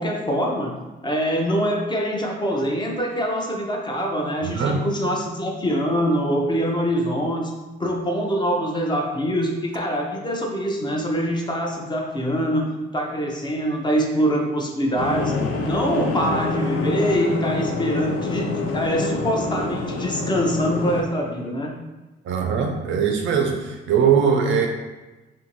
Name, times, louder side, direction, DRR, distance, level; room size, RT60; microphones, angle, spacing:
voice 1, 0.0-7.5 7.8-15.3 15.6-21.7, equal, 20° left, 0 dB, 0.6 m, -24 dB
voice 2, 4.4-4.8 22.2-24.7, right 6 dB, 75° right, 4 dB, 0.5 m, -21 dB
sound 1, 15.0-21.0, left 3 dB, 90° left, 0.5 m, -26 dB
2.6 x 2.6 x 2.9 m, 1.1 s
cardioid pair, 90°, 20 cm